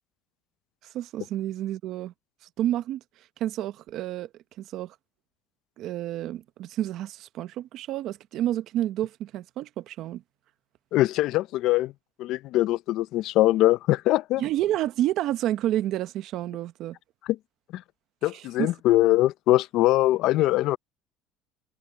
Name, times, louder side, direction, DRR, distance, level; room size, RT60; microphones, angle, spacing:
voice 1, 0.8-2.1 2.6-3.0 3.4-4.3 4.6-4.9 5.8-10.2 14.4-17.0 18.3-18.7, right 13 dB, 50° right, 0.8 m, -29 dB
voice 2, 10.9-11.9 12.2-14.4 17.7-17.8 18.2-20.8, left 16 dB, 55° left, 0.5 m, -22 dB
cardioid pair, 155°, 0 cm